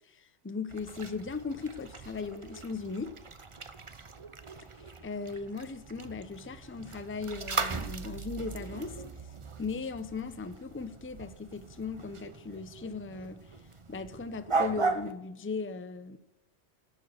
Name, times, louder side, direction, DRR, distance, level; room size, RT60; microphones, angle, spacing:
voice 1, 0.0-3.1 5.0-9.0 9.6-13.4 13.9-16.2, left 4 dB, 15° left, 0.6 m, -38 dB
sound 1, 0.7-15.1, right 4 dB, 30° right, 0.7 m, -38 dB
17.5 x 7.1 x 6.6 m
omnidirectional pair, 1.2 m